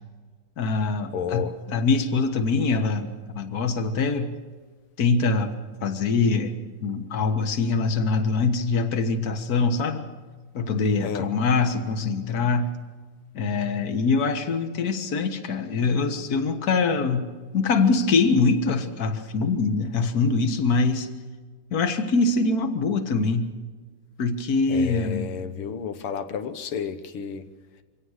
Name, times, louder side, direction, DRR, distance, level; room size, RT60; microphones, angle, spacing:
voice 1, 0.6-4.3 5.0-5.5 5.8-6.5 6.8-10.0 10.5-12.7 13.3-17.3 17.5-21.1 21.7-23.5 24.2-25.3, left 4 dB, 45° left, 8 dB, 1.8 m, -23 dB
voice 2, 1.1-1.6 11.0-11.3 24.7-27.5, left 7 dB, 80° left, 10 dB, 2.1 m, -31 dB
24.5 x 17.0 x 6.5 m, 1.4 s
omnidirectional pair, 2.4 m